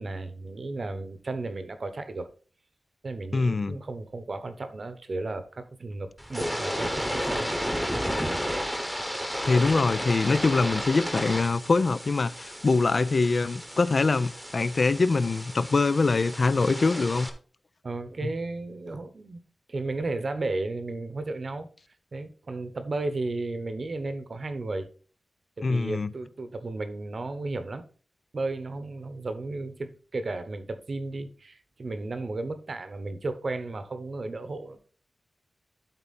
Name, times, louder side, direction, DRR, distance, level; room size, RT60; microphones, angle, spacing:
voice 1, 0.0-2.3 3.0-7.5 17.8-19.4 19.7-21.7 22.1-24.9 25.6-27.9 28.3-34.8, right 2 dB, 45° right, 0.9 m, -34 dB
voice 2, 3.3-3.8 9.5-17.3 25.6-26.1, left 3 dB, 40° left, 0.4 m, -24 dB
sound 1, 6.2-17.3, equal, ahead, 1.0 m, -33 dB
12.0 x 4.1 x 4.1 m
wide cardioid pair, 160°, 0 cm